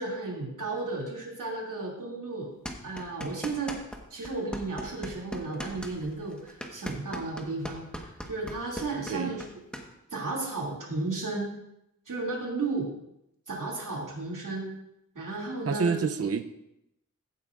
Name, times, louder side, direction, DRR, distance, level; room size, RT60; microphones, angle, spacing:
voice 1, 0.0-2.5 2.8-3.8 4.1-9.5 10.1-11.6 12.1-12.9 13.5-14.7 15.1-16.3, right 3 dB, 70° right, -3 dB, 2.7 m, -34 dB
sound 1, 2.6-4.0 4.2-9.8, equal, 5° left, 1.3 m, -38 dB
voice 2, 15.7-16.4, right 5 dB, 45° right, 8 dB, 0.6 m, -27 dB
15.0 x 8.4 x 2.5 m, 0.83 s
wide cardioid pair, 85°, 33 cm